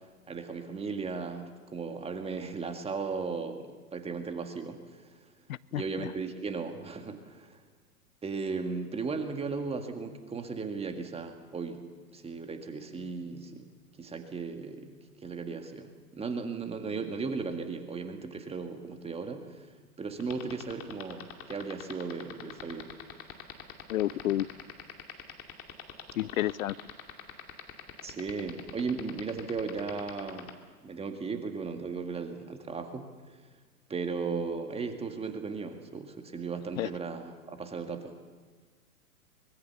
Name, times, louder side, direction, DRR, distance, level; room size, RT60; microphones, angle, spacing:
voice 1, 0.3-5.2 5.7-7.6 8.2-11.8 12.1-13.7 14.0-19.7 20.0-22.9 28.0-30.5 30.8-33.4 33.9-38.1, right 4 dB, 15° right, 1.9 m, -36 dB
voice 2, 5.5-6.1 23.9-24.5 26.2-26.8 36.8-36.9, left 14 dB, 60° left, 0.7 m, -30 dB
sound 1, 20.2-30.5, left 12 dB, 30° left, 2.5 m, -42 dB
24.0 x 21.5 x 7.1 m
hypercardioid pair, 115°, 46 cm